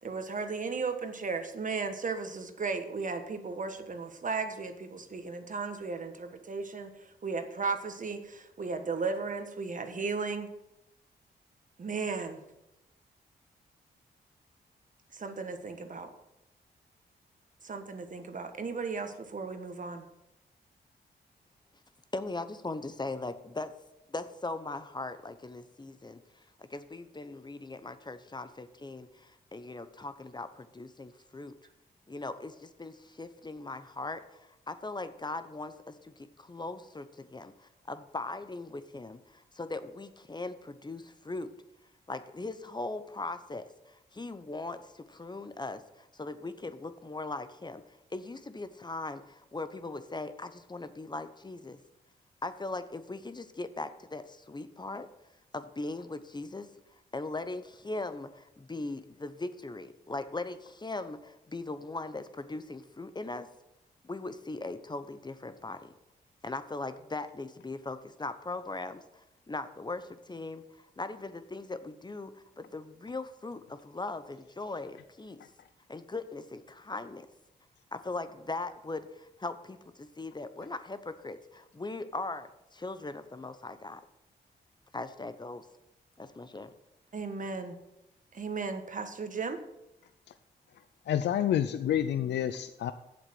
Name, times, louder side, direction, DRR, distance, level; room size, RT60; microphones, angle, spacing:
voice 1, 0.0-10.5 11.8-12.4 15.1-16.1 17.6-20.0 87.1-87.8 88.3-89.6, right 4 dB, 45° right, 7 dB, 1.4 m, -35 dB
voice 2, 22.1-23.7 24.1-31.5 32.1-41.5 42.1-51.8 52.4-55.1 55.5-56.7 57.1-63.5 64.0-65.9 66.4-75.4 75.9-77.3 77.9-84.0 84.9-85.7 86.2-86.7, left 2 dB, 25° left, 11 dB, 0.9 m, -39 dB
voice 3, 91.1-92.9, left 10 dB, 75° left, 11 dB, 0.5 m, -28 dB
8.4 x 7.4 x 6.2 m, 0.88 s
cardioid pair, 60°, 18 cm